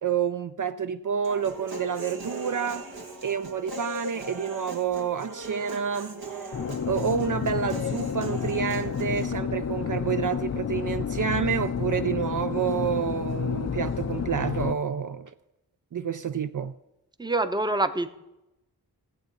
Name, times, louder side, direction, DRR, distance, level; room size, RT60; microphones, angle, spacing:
voice 1, 0.0-2.9 3.2-6.2 6.9-15.3 15.9-16.7, right 7 dB, 55° right, 0.5 m, -28 dB
Human voice, 1.2-9.3, right 1 dB, 75° right, 1.5 m, -39 dB
sound 1, 6.5-14.7, left 7 dB, 45° left, 0.5 m, -30 dB
voice 2, 17.2-18.2, right 2 dB, 10° right, 0.7 m, -26 dB
15.0 x 8.1 x 5.2 m
wide cardioid pair, 60°, 38 cm